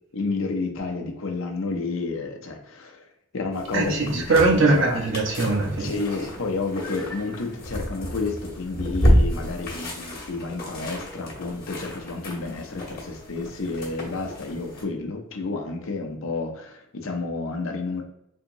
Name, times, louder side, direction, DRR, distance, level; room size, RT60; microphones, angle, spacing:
voice 1, 0.1-3.0 3.3-4.3 4.7-5.0 5.8-18.0, left 3 dB, 70° left, 3 dB, 0.6 m, -30 dB
sound 1, 3.5-14.8, equal, 45° left, 0.9 m, -29 dB
voice 2, 3.7-5.9, right 3 dB, 65° right, 1 dB, 0.7 m, -21 dB
3.5 x 2.9 x 2.5 m, 0.78 s
head